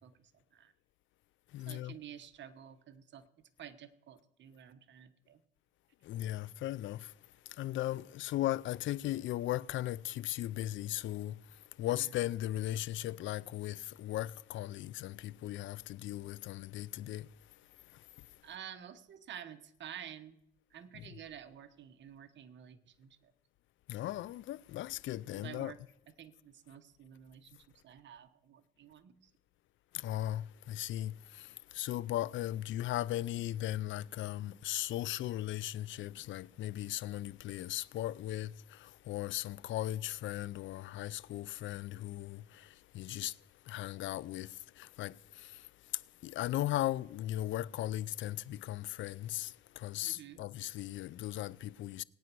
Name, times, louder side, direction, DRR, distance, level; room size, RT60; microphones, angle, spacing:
voice 1, 0.0-0.7 1.7-3.2 3.6-5.4 11.9-12.2 18.4-20.4 20.7-23.3 25.3-25.8 26.2-29.3 50.0-50.4, right 9 dB, 65° right, 1.2 m, -50 dB
voice 2, 1.5-1.9 6.1-7.1 7.6-11.4 11.8-17.3 20.9-21.0 23.9-25.7 29.9-31.1 31.7-42.6 42.9-43.3 43.7-44.5 44.8-45.1 46.2-52.0, left 14 dB, 75° left, 0.5 m, -37 dB
19.0 x 9.2 x 6.1 m
cardioid pair, 90°, 20 cm